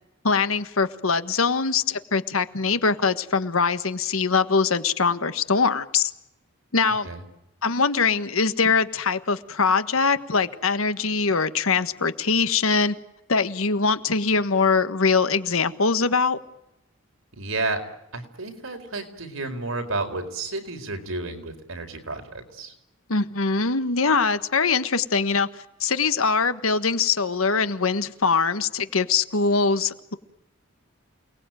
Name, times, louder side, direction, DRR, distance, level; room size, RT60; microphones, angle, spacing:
voice 1, 0.2-6.1 6.7-7.1 7.6-12.9 13.3-16.4 23.1-25.5 25.8-30.1, left 4 dB, 85° left, 1.4 m, -22 dB
voice 2, 17.3-17.8 18.1-22.7, right 2 dB, 80° right, 4.5 m, -31 dB
29.0 x 19.5 x 9.2 m
head